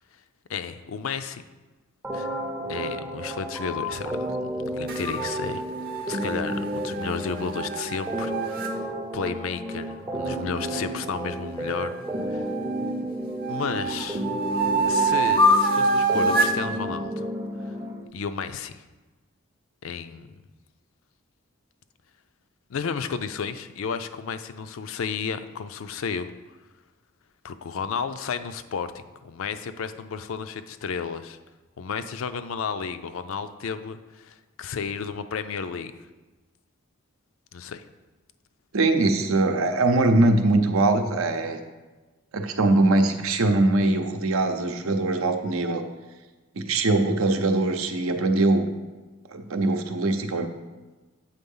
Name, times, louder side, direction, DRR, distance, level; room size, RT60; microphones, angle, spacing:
voice 1, 0.5-1.4 2.1-2.3 2.7-5.6 6.1-8.8 9.1-11.9 12.3-12.5 13.5-14.3 14.9-17.3 17.6-17.8 18.1-18.8 19.8-20.4 22.7-26.3 27.4-31.4 31.8-35.9 37.5-37.9, left 6 dB, 75° left, 11 dB, 0.4 m, -32 dB
sound 1, 2.0-18.0, equal, 15° right, 0.4 m, -32 dB
sound 2, 4.9-8.7 11.7-12.9 13.4-16.6, right 2 dB, 45° right, 0.7 m, -25 dB
voice 2, 38.7-41.6 42.3-45.8 46.5-48.7 49.3-50.5, right 2 dB, 85° right, 6 dB, 0.7 m, -22 dB
8.1 x 3.7 x 5.5 m, 1.2 s
head